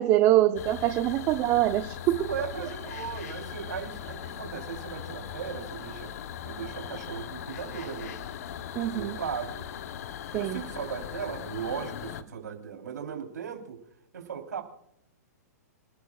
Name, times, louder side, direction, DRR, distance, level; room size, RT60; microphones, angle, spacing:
voice 1, 0.0-2.3 8.7-9.2 10.3-10.6, right 14 dB, 30° right, 7 dB, 0.8 m, -24 dB
sound 1, 0.6-12.2, left 9 dB, 60° left, 1.0 m, -39 dB
voice 2, 2.2-6.1 6.4-8.2 8.9-9.6 10.4-13.8 14.1-14.6, right 8 dB, 85° right, 2 dB, 3.7 m, -37 dB
27.0 x 12.0 x 2.4 m, 0.77 s
hypercardioid pair, 130°, 9 cm